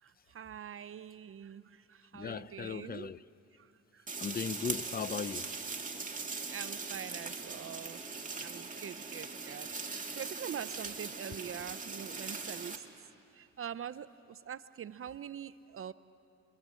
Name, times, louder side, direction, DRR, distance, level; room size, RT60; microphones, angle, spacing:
voice 1, 0.0-3.1 3.5-4.1 6.5-13.0 13.3-15.9, right 8 dB, 45° right, 0.6 m, -44 dB
voice 2, 2.1-3.2 4.2-5.5, left 6 dB, 30° left, 0.6 m, -37 dB
sound 1, 4.1-12.8, right 4 dB, 25° right, 2.4 m, -40 dB
28.0 x 23.5 x 7.6 m
cardioid pair, 90°, 30 cm